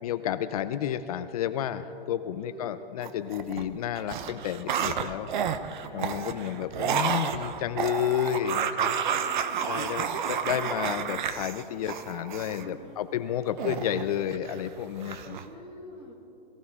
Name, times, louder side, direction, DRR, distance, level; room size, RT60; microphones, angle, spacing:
voice 1, 0.0-5.3 5.9-8.9 9.7-15.4, left 10 dB, 40° left, 11 dB, 0.5 m, -31 dB
voice 2, 2.4-2.8 5.8-7.0 9.0-10.0 12.6-13.0 13.4-13.9 15.2-16.1, right 1 dB, 15° right, 1 dB, 1.4 m, -48 dB
sound 1, 3.0-3.7 4.0-12.7 13.6-14.7 15.0-15.5, right 8 dB, 55° right, 0.9 m, -31 dB
22.5 x 15.5 x 3.6 m, 2.9 s
hypercardioid pair, 150°, 30 cm